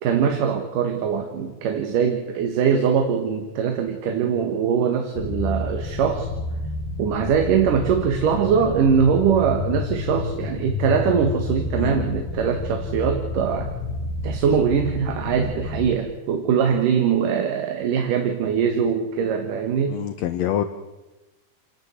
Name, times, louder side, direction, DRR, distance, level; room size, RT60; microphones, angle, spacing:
voice 1, 0.0-6.3 7.0-13.7 14.2-20.0, right 7 dB, 70° right, 5 dB, 3.0 m, -22 dB
sound 1, 5.1-15.9, left 3 dB, 90° left, 3.5 m, -30 dB
voice 2, 11.8-12.1 19.9-20.6, left 10 dB, 70° left, 9 dB, 1.7 m, -26 dB
28.5 x 12.0 x 8.1 m, 1.1 s
omnidirectional pair, 4.1 m